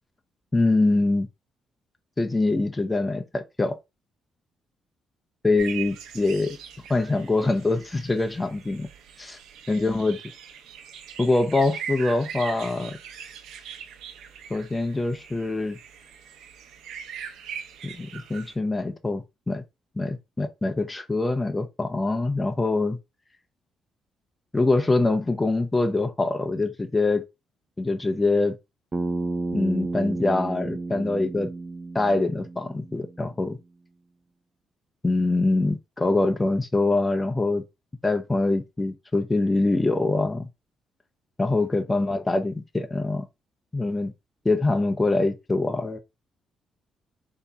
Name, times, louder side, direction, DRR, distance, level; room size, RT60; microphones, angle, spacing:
voice 1, 0.5-1.3 2.2-3.8 5.4-6.6 6.9-8.9 9.2-9.4 9.7-10.2 11.2-13.0 14.5-15.8 17.8-19.6 20.0-23.0 24.5-27.2 27.8-28.6 29.5-31.5 31.9-33.6 35.0-37.6 38.0-40.5 41.4-43.2 43.7-44.1 44.4-46.0, left 2 dB, 15° left, 0.6 m, -24 dB
sound 1, 5.6-18.5, right 8 dB, 85° right, 0.8 m, -41 dB
Bass guitar, 28.9-33.2, right 3 dB, 30° right, 0.4 m, -32 dB
3.6 x 2.8 x 3.9 m
cardioid pair, 90°, 0 cm